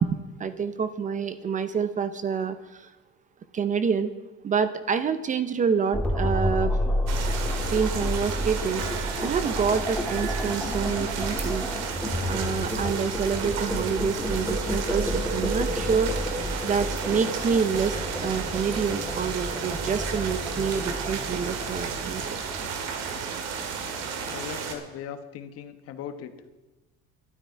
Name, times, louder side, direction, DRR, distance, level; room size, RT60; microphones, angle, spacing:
voice 1, 0.0-2.9 3.5-4.1 4.4-6.8 7.7-8.8 9.2-11.7 12.3-16.1 16.6-22.4, right 6 dB, 25° right, 12 dB, 0.6 m, -27 dB
sound 1, 5.9-23.2, left 1 dB, 5° left, 1.5 m, -30 dB
sound 2, 7.1-24.8, right 6 dB, 60° right, 2.1 m, -33 dB
sound 3, 8.5-11.6 11.9-12.3, right 6 dB, 85° right, 2.7 m, -42 dB
voice 2, 24.3-26.3, left 8 dB, 55° left, 9 dB, 1.3 m, -38 dB
12.5 x 12.0 x 4.6 m, 1.1 s
cardioid pair, 145°, 29 cm